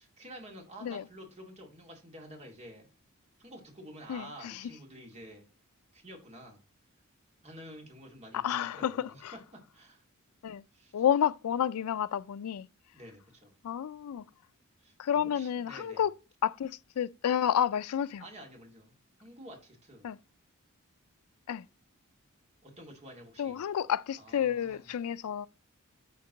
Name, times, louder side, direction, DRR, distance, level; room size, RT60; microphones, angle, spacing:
voice 1, 0.0-2.9 3.4-5.4 5.9-6.6 7.4-10.0 10.7-11.0 12.9-13.5 14.8-16.0 18.2-18.9 19.2-20.1 22.6-23.6 24.2-24.9, right 1 dB, 30° right, 2.3 m, -50 dB
voice 2, 4.1-4.7 8.3-9.3 10.4-10.6 10.9-12.7 13.6-14.2 15.0-16.1 16.4-18.2 20.0-20.2 21.5-21.6 23.4-25.5, left 9 dB, 85° left, 0.4 m, -30 dB
11.0 x 3.7 x 3.9 m
head